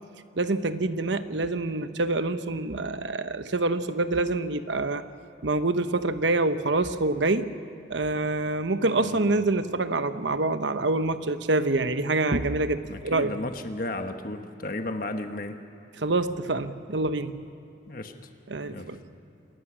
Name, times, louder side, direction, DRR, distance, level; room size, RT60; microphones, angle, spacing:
voice 1, 0.4-5.0 5.4-7.5 7.9-13.3 16.0-17.4 18.5-19.0, right 2 dB, 75° right, 10 dB, 1.0 m, -26 dB
voice 2, 12.9-15.6 17.9-18.1 18.7-18.9, left 2 dB, 45° left, 6 dB, 1.2 m, -34 dB
27.5 x 20.5 x 6.3 m, 2.9 s
head